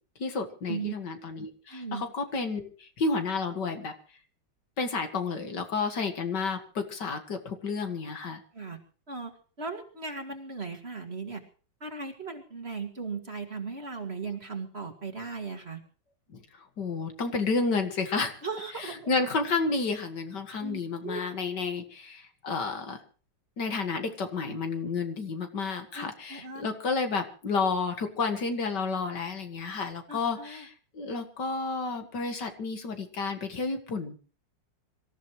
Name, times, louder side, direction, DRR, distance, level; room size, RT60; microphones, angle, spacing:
voice 1, 0.2-3.9 4.8-8.4 16.3-18.4 18.8-23.0 23.6-34.2, left 4 dB, 65° left, 6 dB, 2.4 m, -31 dB
voice 2, 1.7-2.0 8.5-8.8 9.1-9.3 9.6-11.4 11.8-15.8 18.4-19.1 20.6-21.2 25.9-26.6 30.1-30.6, right 4 dB, 35° right, 3 dB, 2.5 m, -37 dB
25.5 x 14.5 x 3.1 m, 0.39 s
omnidirectional pair, 2.0 m